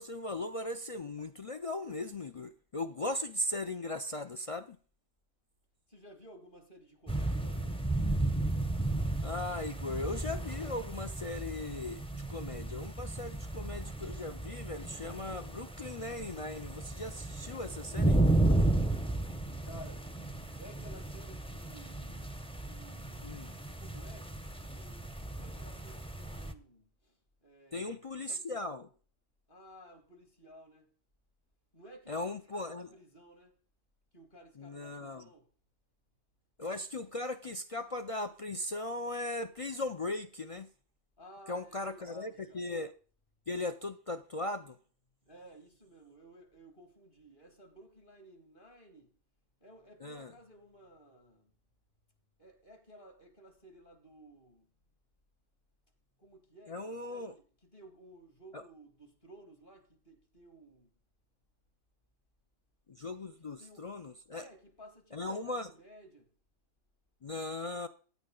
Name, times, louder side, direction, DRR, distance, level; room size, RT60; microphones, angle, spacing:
voice 1, 0.0-4.8 9.2-18.3 23.2-23.5 27.7-28.9 32.1-32.9 34.6-35.3 36.6-40.7 41.5-42.9 43.5-44.8 50.0-50.3 56.7-57.4 58.5-58.6 62.9-64.5 65.1-65.7 67.2-67.9, left 2 dB, 60° left, 0.3 m, -38 dB
voice 2, 5.9-7.8 19.6-20.1 20.5-22.3 22.6-23.3 23.8-24.5 24.8-28.6 29.5-30.9 31.7-33.5 34.1-35.5 41.2-42.7 45.2-49.1 49.6-51.5 52.4-54.7 56.2-57.4 57.7-60.9 63.6-63.9 64.3-66.3, right 1 dB, 35° left, 2.4 m, -55 dB
sound 1, 7.1-26.5, right 2 dB, 5° left, 0.5 m, -34 dB
15.5 x 9.8 x 3.9 m
omnidirectional pair, 1.5 m